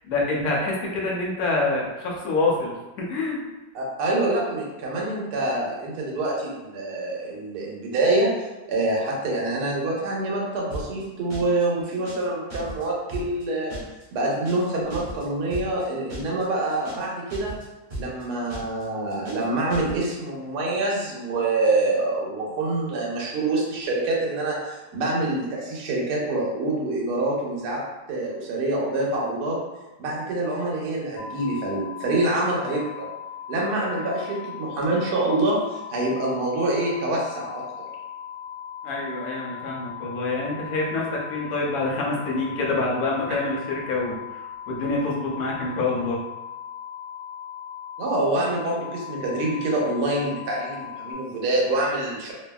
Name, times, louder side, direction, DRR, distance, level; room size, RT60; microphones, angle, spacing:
voice 1, 0.1-3.4 38.8-44.4 44.7-46.2, left 2 dB, 70° left, -2 dB, 1.0 m, -26 dB
voice 2, 3.7-13.7 14.1-17.6 18.0-27.8 28.1-29.6 30.0-33.1 33.5-37.9 43.3-43.4 48.0-52.3, right 2 dB, 70° right, -3 dB, 1.1 m, -26 dB
sound 1, 10.7-11.0 11.3-11.6 11.9-12.2 12.5-12.8 13.1-13.4 13.7-14.0 14.3-14.6 14.9-15.2 15.5-15.8 16.1-16.4 16.7-17.0 17.3-17.6 17.9-18.2 18.5-18.8 19.1-19.4 19.7-20.0, right 1 dB, 30° right, 0.7 m, -36 dB
sound 2, 31.2-51.1, left 9 dB, 90° left, 1.3 m, -38 dB
2.7 x 2.6 x 2.2 m, 1.1 s
omnidirectional pair, 2.0 m